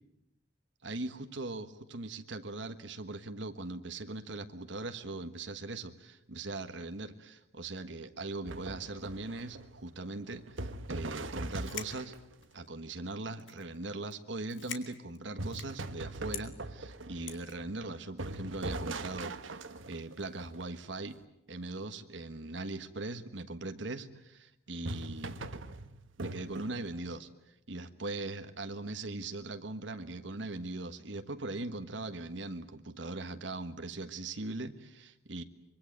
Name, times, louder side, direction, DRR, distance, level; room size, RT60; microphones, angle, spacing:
voice 1, 0.8-12.1 12.5-19.4 19.9-21.2 21.5-25.4 26.2-27.3 27.7-35.4, right 2 dB, 70° right, 8 dB, 1.5 m, -40 dB
sound 1, 8.4-12.4 15.4-21.1 24.8-27.0, right 2 dB, 85° right, 1.5 m, -41 dB
sound 2, 11.5-12.7 13.3-13.8 14.0-14.2 14.4-15.9 16.3-16.5 17.3-17.6, left 9 dB, 75° left, 2.7 m, -44 dB
25.0 x 23.5 x 9.4 m, 0.86 s
head